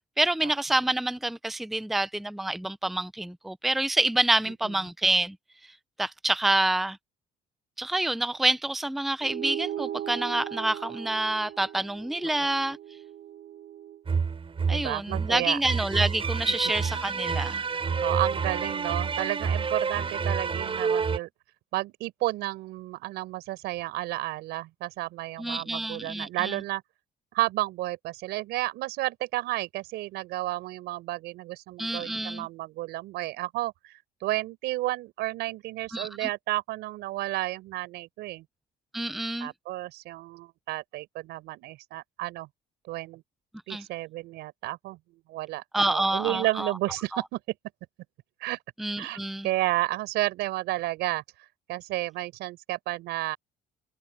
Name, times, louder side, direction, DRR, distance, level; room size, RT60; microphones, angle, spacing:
voice 1, 0.2-5.4 6.0-7.0 7.8-12.8 14.7-17.6 25.4-26.6 31.8-32.5 35.9-36.3 38.9-39.5 43.7-43.9 45.7-46.7 48.8-49.5, right 2 dB, ahead, 0.6 m, -27 dB
sound 1, 9.2-14.0, right 11 dB, 55° right, 1.6 m, -38 dB
sound 2, 14.1-21.2, right 5 dB, 30° right, 7.5 m, -29 dB
voice 2, 14.7-15.6 17.5-17.7 18.0-21.3 21.7-26.8 27.3-33.9 34.2-38.4 39.4-42.5 42.9-43.2 43.7-45.6 45.9-47.4 48.4-48.6 49.0-51.2 51.7-53.4, right 17 dB, 85° right, 4.8 m, -32 dB
cardioid pair, 110°, 17 cm